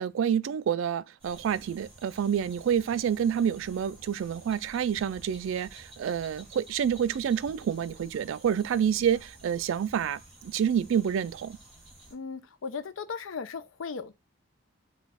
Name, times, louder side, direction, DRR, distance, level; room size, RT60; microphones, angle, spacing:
voice 1, 0.0-11.6, right 8 dB, 80° right, 0.3 m, -28 dB
sound 1, 1.2-12.1, right 1 dB, 30° right, 1.9 m, -52 dB
voice 2, 12.1-14.1, left 5 dB, 80° left, 0.5 m, -37 dB
4.0 x 2.3 x 4.1 m
head